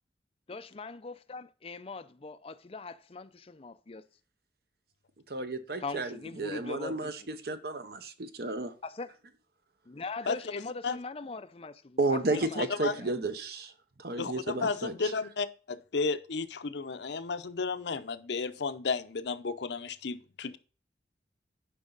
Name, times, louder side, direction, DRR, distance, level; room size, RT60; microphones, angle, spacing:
voice 1, 0.5-4.0 5.8-7.1 8.8-9.1 9.9-12.6 13.0-13.1, left 3 dB, 35° left, 0.5 m, -41 dB
voice 2, 5.3-8.7 12.0-13.7 14.0-15.1, right 2 dB, 60° right, 0.9 m, -32 dB
voice 3, 10.3-11.0 12.6-12.9 14.2-20.6, left 4 dB, 75° left, 0.6 m, -33 dB
11.0 x 5.3 x 3.9 m
head